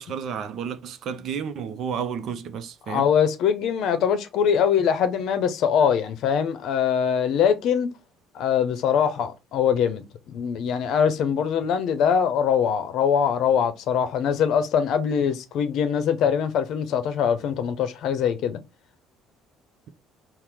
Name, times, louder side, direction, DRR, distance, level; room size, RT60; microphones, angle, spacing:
voice 1, 0.0-3.1, right 7 dB, 60° right, 0.5 m, -31 dB
voice 2, 2.9-7.9 8.3-18.6, left 7 dB, 60° left, 0.6 m, -23 dB
4.2 x 2.1 x 3.4 m
hypercardioid pair, 60°, 0 cm